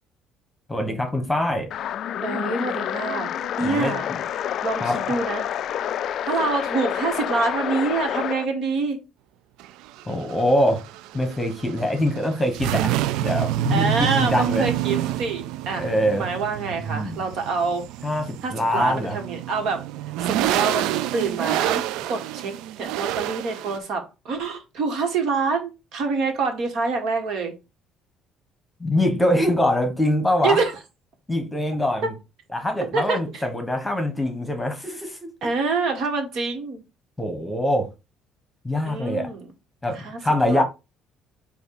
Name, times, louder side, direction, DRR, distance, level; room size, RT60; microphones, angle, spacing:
voice 1, 0.7-1.7 3.6-4.2 4.8-5.0 10.1-10.8 11.1-14.7 15.8-16.3 16.8-17.2 18.0-19.2 28.8-30.6 31.3-32.1 32.5-35.3 37.2-37.9 38.6-39.3 39.8-40.6, left 1 dB, 5° left, 1.3 m, -24 dB
sound 1, 1.7-8.5, left 10 dB, 55° left, 0.3 m, -28 dB
voice 2, 2.2-3.3 3.6-4.1 4.6-5.5 6.2-9.0 13.7-17.8 18.4-19.8 20.2-27.5 30.4-30.7 32.9-33.5 35.4-36.8 38.9-39.5 39.9-40.2 40.5-40.6, right 4 dB, 60° right, 1.8 m, -26 dB
sound 2, 9.6-23.8, right 14 dB, 85° right, 0.3 m, -28 dB
7.8 x 2.7 x 4.8 m
cardioid pair, 135°, 0 cm